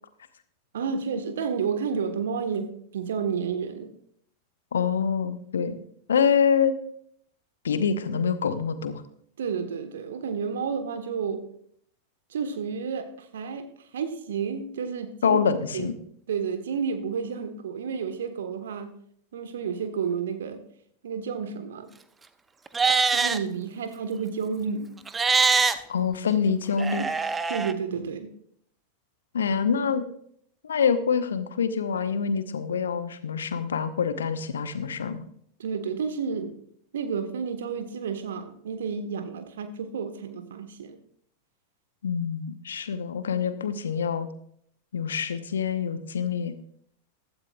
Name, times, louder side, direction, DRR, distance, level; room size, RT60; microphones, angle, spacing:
voice 1, 0.7-3.9 9.4-11.4 12.3-13.6 13.9-15.4 15.7-15.9 16.3-18.9 19.3-20.6 21.0-21.9 23.1-24.9 27.5-28.3 35.6-36.6 36.9-41.0, right 6 dB, 60° right, 9 dB, 1.3 m, -31 dB
voice 2, 4.7-5.8 6.1-6.7 7.6-9.0 15.2-15.9 25.9-27.0 29.3-30.0 30.6-35.2 42.0-44.3 44.9-46.5, left 6 dB, 65° left, 12 dB, 0.9 m, -25 dB
Livestock farm animals working animals, 22.7-23.4 25.1-25.7 26.8-27.7, right 4 dB, 15° right, 0.7 m, -23 dB
15.5 x 13.0 x 2.4 m, 0.66 s
figure-of-eight pair, 90°, 0 cm